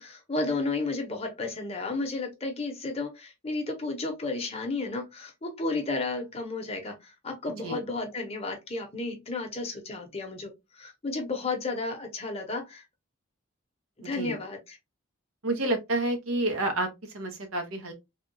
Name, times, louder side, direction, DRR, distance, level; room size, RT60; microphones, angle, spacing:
voice 1, 0.0-12.8 14.0-14.8, left 3 dB, 30° left, 0.7 m, -33 dB
voice 2, 14.0-14.3 15.4-16.9 17.1-17.9, right 2 dB, 85° right, 0.9 m, -29 dB
3.4 x 2.3 x 2.6 m
head